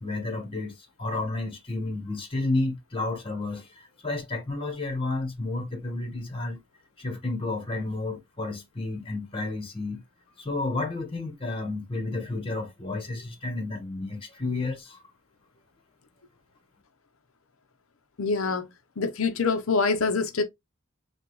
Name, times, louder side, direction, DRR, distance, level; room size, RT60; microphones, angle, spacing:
voice 1, 0.0-6.6 7.0-10.0 10.4-15.0, left 2 dB, 25° left, 1.2 m, -31 dB
voice 2, 18.2-18.7 19.0-20.4, left 4 dB, 90° left, 0.7 m, -25 dB
5.9 x 2.4 x 3.0 m
head